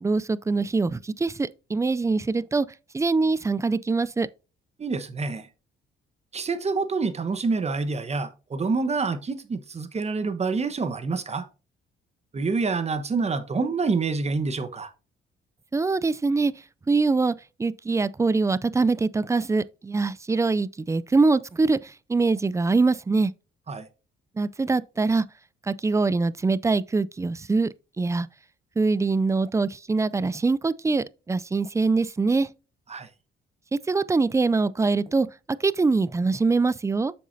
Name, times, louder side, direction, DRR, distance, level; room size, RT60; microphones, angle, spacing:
voice 1, 0.0-2.7 2.9-4.3 15.7-16.5 16.9-17.3 17.6-23.3 24.4-25.2 25.7-27.7 28.0-28.3 28.8-32.5 33.7-35.3 35.6-37.1, right 3 dB, 15° right, 0.4 m, -23 dB
voice 2, 4.8-5.5 6.3-11.4 12.3-14.9 23.7-23.9 32.9-33.1, right 4 dB, 35° right, 1.2 m, -27 dB
7.8 x 6.2 x 2.7 m
cardioid pair, 90°, 20 cm